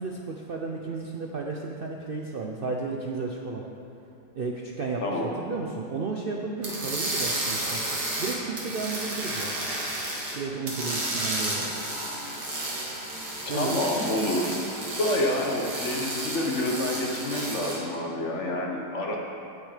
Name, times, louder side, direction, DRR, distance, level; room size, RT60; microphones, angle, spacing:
voice 1, 0.0-3.6 4.3-7.9 8.2-9.6 10.3-11.7 13.5-13.8 19.0-19.2, right 4 dB, 85° right, 0 dB, 0.5 m, -33 dB
sound 1, 6.6-10.4 10.7-17.8, right 1 dB, 65° right, 2.6 m, -32 dB
voice 2, 13.5-14.6 15.0-19.2, left 1 dB, 45° left, 0 dB, 1.3 m, -28 dB
16.5 x 6.3 x 5.0 m, 2.7 s
omnidirectional pair, 1.9 m